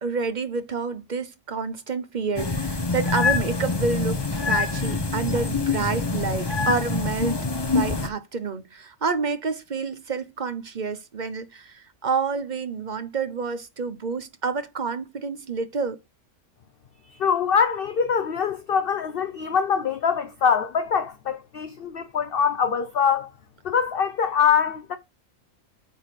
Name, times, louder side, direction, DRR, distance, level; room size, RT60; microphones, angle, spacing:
voice 1, 0.0-4.2 4.5-7.4 7.7-16.0, right 4 dB, 40° right, 1.1 m, -28 dB
sound 1, 2.4-8.1, left 4 dB, 20° left, 0.9 m, -25 dB
voice 2, 17.2-23.3 23.6-25.0, left 7 dB, 50° left, 0.9 m, -23 dB
9.0 x 4.1 x 4.9 m
omnidirectional pair, 1.3 m